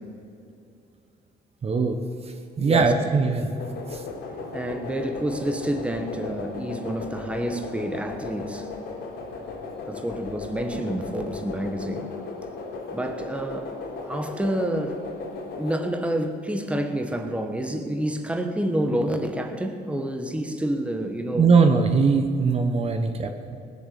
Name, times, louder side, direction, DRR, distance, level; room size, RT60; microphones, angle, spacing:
voice 1, 1.6-2.0 2.6-3.5 3.9-4.0 21.3-23.6, right 4 dB, 35° right, 6 dB, 1.0 m, -21 dB
voice 2, 2.6-2.9 4.5-8.7 9.9-12.1 12.9-13.8 14.0-15.2 15.6-21.5, right 1 dB, 5° right, 6 dB, 1.2 m, -28 dB
sound 1, 3.5-15.8, left 4 dB, 85° left, 3.7 m, -36 dB
18.5 x 8.1 x 7.6 m, 2.6 s
cardioid pair, 110°, 17 cm